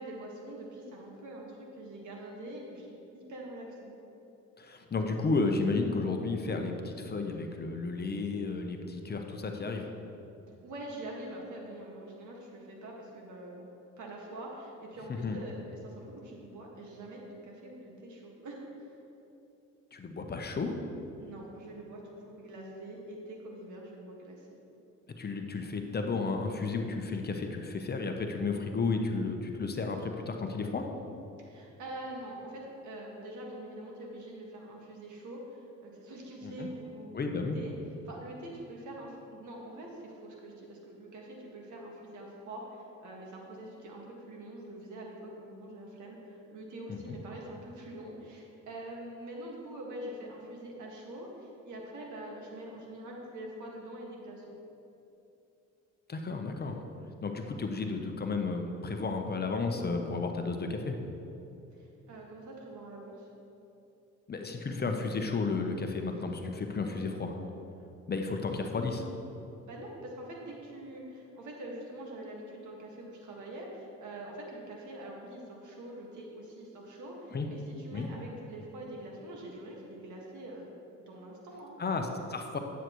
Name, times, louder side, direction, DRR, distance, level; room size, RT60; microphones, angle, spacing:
voice 1, 0.0-2.9 3.1-3.9 10.6-13.7 14.0-18.9 21.2-24.5 31.5-37.7 38.0-54.5 61.8-63.3 66.8-67.0 69.6-80.7 81.1-81.8, right 1 dB, 75° right, -1 dB, 1.8 m, -44 dB
voice 2, 4.6-9.9 15.2-15.4 19.9-20.7 25.2-30.9 36.4-36.7 37.1-37.6 46.9-47.2 56.1-56.8 57.2-61.0 64.3-67.3 68.1-69.1 77.3-77.5 77.9-78.1 81.8-82.6, left 3 dB, 35° left, 4 dB, 0.8 m, -32 dB
10.0 x 8.1 x 3.1 m, 2.9 s
cardioid pair, 90°, 30 cm